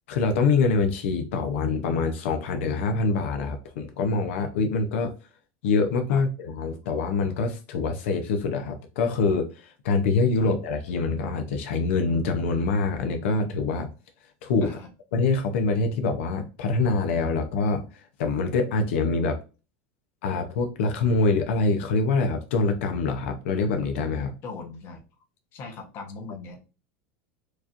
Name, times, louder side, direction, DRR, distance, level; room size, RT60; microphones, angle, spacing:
voice 1, 0.1-5.1 5.6-13.9 14.4-14.8 15.1-19.4 20.2-24.3, left 4 dB, 85° left, 0.6 m, -25 dB
voice 2, 24.4-25.0 25.5-26.6, left 4 dB, 40° left, 1.0 m, -39 dB
4.7 x 2.5 x 2.8 m
supercardioid pair, 155°, 6 cm